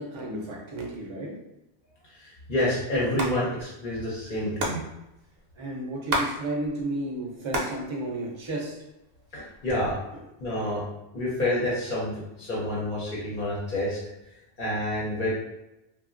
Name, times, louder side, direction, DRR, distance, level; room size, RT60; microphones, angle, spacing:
voice 1, 0.0-1.4 5.6-8.8, right 1 dB, 35° right, -1 dB, 0.5 m, -33 dB
voice 2, 2.2-4.8 9.3-10.0 10.4-10.8 11.1-14.0 14.6-15.3, left 1 dB, 55° left, -6 dB, 0.8 m, -28 dB
Hands, 3.0-3.3 3.6-3.7 3.9-6.3 6.6-7.8 8.1-8.9 9.5-10.1, right 1 dB, 65° right, 0.7 m, -30 dB
2.9 x 2.3 x 2.5 m, 0.92 s
omnidirectional pair, 1.1 m